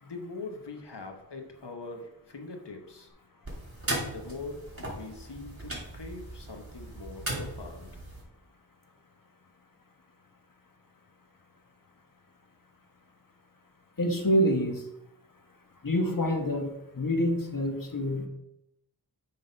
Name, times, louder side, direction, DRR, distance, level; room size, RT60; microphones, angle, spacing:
voice 1, 0.0-3.1 4.1-8.1, left 3 dB, 85° left, 3 dB, 1.2 m, -42 dB
sound 1, 3.4-8.2, right 1 dB, 35° right, 2.7 m, -37 dB
voice 2, 14.0-14.8 15.8-18.3, equal, 55° left, 3 dB, 1.4 m, -27 dB
7.8 x 3.9 x 5.3 m, 0.83 s
wide cardioid pair, 45°, 40 cm